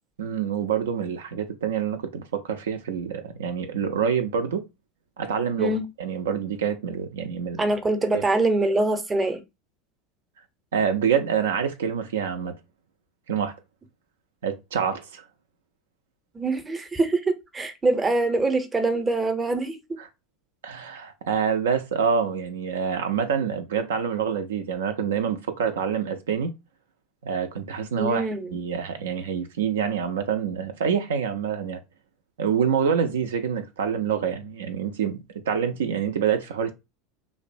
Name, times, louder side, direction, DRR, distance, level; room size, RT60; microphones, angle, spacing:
voice 1, 0.2-4.6 5.2-7.6 8.1-8.2 10.7-12.5 13.3-13.5 14.4-15.2 20.6-26.5 27.2-28.3 28.5-31.8 32.4-36.7, right 7 dB, 75° right, 0.3 m, -26 dB
voice 2, 7.6-9.4 16.3-20.0 27.9-28.6, right 2 dB, 20° right, 0.6 m, -24 dB
2.5 x 2.1 x 2.5 m
hypercardioid pair, 80°, 0 cm